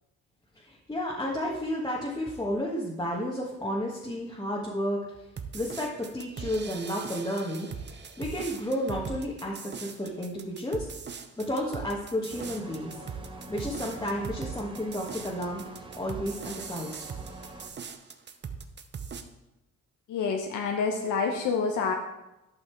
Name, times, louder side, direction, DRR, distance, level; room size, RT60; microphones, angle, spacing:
voice 1, 0.5-5.3 5.5-10.9 11.4-13.0 13.5-15.6 16.0-17.1, equal, 15° left, -4 dB, 1.4 m, -32 dB
sound 1, 5.4-19.2, right 6 dB, 35° right, 0.8 m, -40 dB
sound 2, 12.3-17.7, right 2 dB, 15° right, 1.2 m, -45 dB
voice 2, 20.1-21.9, left 5 dB, 85° left, 3 dB, 1.0 m, -27 dB
11.5 x 5.6 x 4.6 m, 0.94 s
cardioid pair, 90°, 30 cm